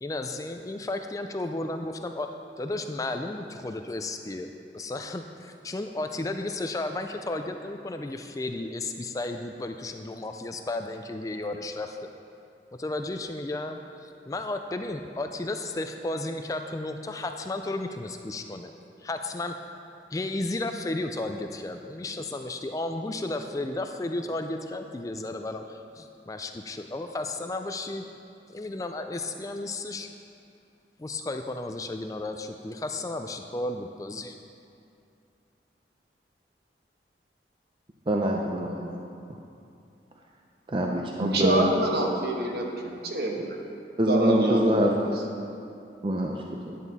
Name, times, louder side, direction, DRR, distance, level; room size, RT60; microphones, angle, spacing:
voice 1, 0.0-2.3 2.6-12.0 12.8-18.7 19.0-19.5 20.1-28.1 28.5-30.1 31.0-34.3, left 2 dB, 20° left, 5 dB, 0.3 m, -33 dB
voice 2, 38.1-39.0 40.7-41.6 44.0-44.9 46.0-46.8, right 1 dB, 30° right, 0 dB, 0.5 m, -25 dB
voice 3, 41.2-43.6 44.1-44.9, right 1 dB, 60° right, 0 dB, 1.2 m, -26 dB
10.5 x 9.0 x 4.1 m, 2.6 s
head